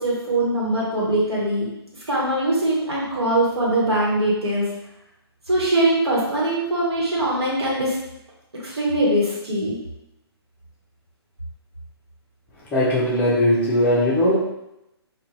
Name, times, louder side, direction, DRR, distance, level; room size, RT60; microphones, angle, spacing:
voice 1, 0.0-1.7 2.1-4.7 5.5-8.0 8.6-9.8, right 1 dB, 75° right, -5 dB, 1.2 m, -22 dB
voice 2, 12.7-14.4, left 1 dB, 15° left, -6 dB, 0.5 m, -19 dB
2.5 x 2.2 x 3.0 m, 0.87 s
figure-of-eight pair, 135°, 14 cm